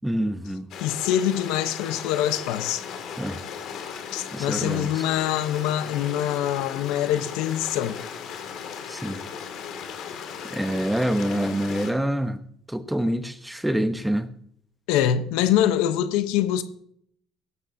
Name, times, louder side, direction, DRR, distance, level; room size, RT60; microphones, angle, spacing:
voice 1, 0.0-0.7 3.2-3.4 4.3-4.9 8.9-9.2 10.5-12.4 12.7-14.3, right 1 dB, 5° right, 1.0 m, -26 dB
Stream, 0.7-11.9, left 7 dB, 65° left, 2.4 m, -37 dB
voice 2, 0.8-2.8 4.1-8.0 14.9-16.6, left 11 dB, 85° left, 0.9 m, -24 dB
16.0 x 12.5 x 2.8 m
cardioid pair, 100°, 0 cm